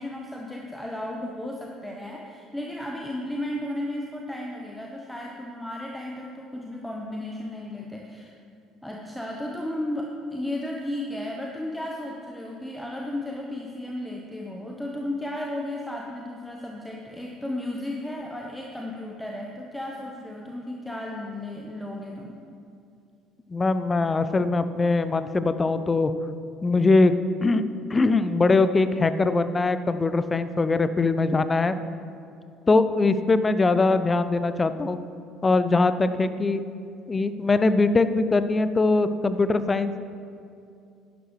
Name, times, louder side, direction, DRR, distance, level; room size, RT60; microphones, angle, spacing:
voice 1, 0.0-8.3 8.8-22.4, left 1 dB, 5° left, -1 dB, 1.0 m, -34 dB
voice 2, 23.5-26.1 26.6-27.1 27.4-27.6 27.9-31.7 32.7-35.0 35.4-36.6 37.1-40.0, left 3 dB, 25° left, 12 dB, 0.5 m, -22 dB
11.5 x 11.0 x 3.2 m, 2.5 s
figure-of-eight pair, 55°, 0 cm